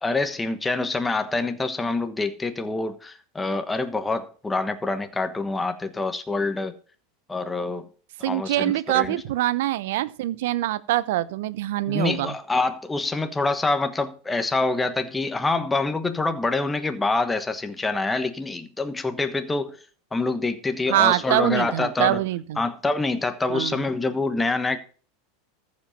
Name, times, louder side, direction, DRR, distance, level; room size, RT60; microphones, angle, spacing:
voice 1, 0.0-6.7 7.3-7.9 8.3-9.2 11.9-19.8 20.1-22.2 22.6-24.8, left 3 dB, 15° left, 1.2 m, -26 dB
voice 2, 8.2-12.3 20.9-22.6 23.5-23.8, right 14 dB, 70° right, 0.8 m, -24 dB
14.0 x 5.3 x 5.8 m
hypercardioid pair, 100°, 0 cm